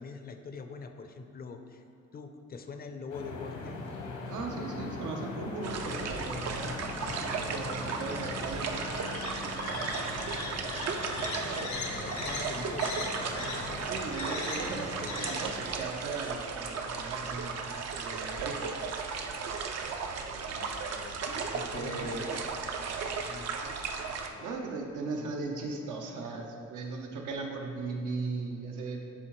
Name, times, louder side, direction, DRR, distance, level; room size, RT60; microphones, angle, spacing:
voice 1, 0.0-1.8 2.1-3.8 10.8-14.8 19.8-22.5 23.0-23.7 24.3-24.6, left 4 dB, 30° left, 7 dB, 0.5 m, -45 dB
sound 1, 3.1-15.7, left 3 dB, 75° left, 1.1 m, -39 dB
voice 2, 4.3-9.0 13.9-17.6 17.9-18.8 20.4-20.6 21.7-22.2 24.4-29.0, right 3 dB, 80° right, 1 dB, 0.9 m, -38 dB
sound 2, 5.6-24.3, right 5 dB, 60° right, 0.6 m, -35 dB
11.0 x 3.6 x 3.1 m, 2.4 s
cardioid pair, 90°, 30 cm